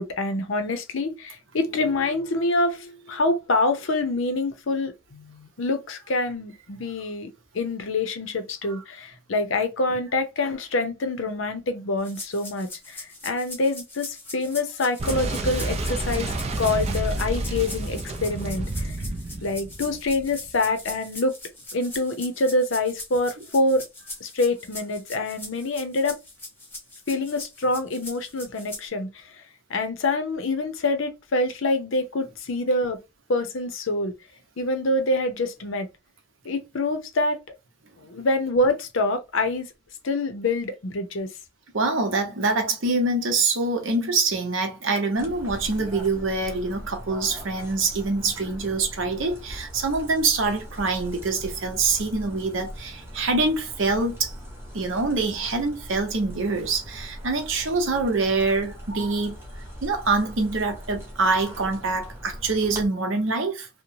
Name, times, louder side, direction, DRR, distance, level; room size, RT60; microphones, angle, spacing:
voice 1, 0.0-19.0 19.4-21.3 21.7-23.9 24.2-26.2 27.1-29.3 29.7-33.0 33.3-34.1 34.6-35.9 36.4-37.4 38.0-39.7 40.0-41.3, left 2 dB, 70° left, 0.6 m, -26 dB
sound 1, 12.0-28.9, left 2 dB, 10° left, 1.0 m, -41 dB
Boom, 15.0-20.6, right 2 dB, 30° right, 0.4 m, -29 dB
voice 2, 41.7-54.3 54.7-59.4 59.8-63.7, right 3 dB, 65° right, 0.8 m, -25 dB
sound 2, 45.1-62.9, equal, 10° right, 0.8 m, -40 dB
2.9 x 2.1 x 2.6 m
head